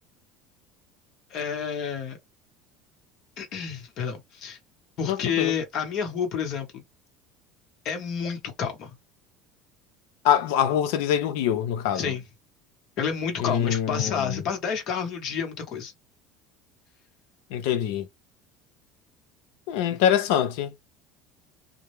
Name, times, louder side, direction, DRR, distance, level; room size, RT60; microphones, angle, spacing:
voice 1, 1.3-2.2 3.4-4.6 5.0-6.8 7.8-9.0 11.9-12.2 13.0-15.9 19.9-20.0, left 7 dB, 50° left, 0.9 m, -29 dB
voice 2, 5.0-5.5 10.2-12.1 13.4-14.4 17.5-18.1 19.7-20.7, left 10 dB, 80° left, 0.5 m, -24 dB
2.3 x 2.0 x 3.0 m
cardioid pair, 145°, 0 cm